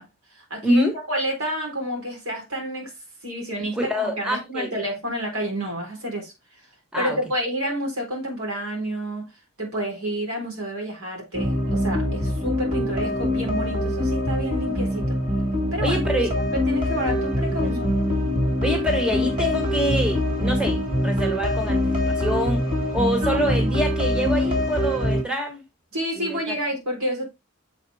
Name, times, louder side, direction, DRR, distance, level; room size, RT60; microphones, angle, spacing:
voice 1, 0.0-2.9 3.2-6.3 7.0-9.3 9.6-15.2 15.7-17.9 23.2-23.8 25.9-27.3, right 1 dB, 90° right, 3.7 m, -29 dB
voice 2, 0.6-1.0 3.7-4.7 6.9-7.2 15.8-16.4 17.5-17.8 18.6-22.6 22.9-25.6 26.2-26.5, equal, 5° right, 1.4 m, -25 dB
sound 1, 11.3-25.2, left 1 dB, 40° right, 2.4 m, -24 dB
7.3 x 4.3 x 3.4 m
head